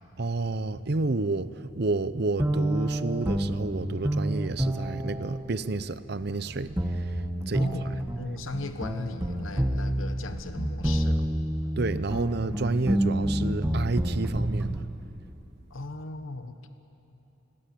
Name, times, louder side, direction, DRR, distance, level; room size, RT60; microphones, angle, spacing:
voice 1, 0.2-7.7 11.8-14.9, right 3 dB, 55° right, 14 dB, 0.7 m, -30 dB
sound 1, 2.4-14.8, right 1 dB, 10° right, 1.1 m, -29 dB
voice 2, 7.6-11.3 15.7-16.7, left 2 dB, 85° left, 8 dB, 1.2 m, -37 dB
27.5 x 20.5 x 8.6 m, 3.0 s
head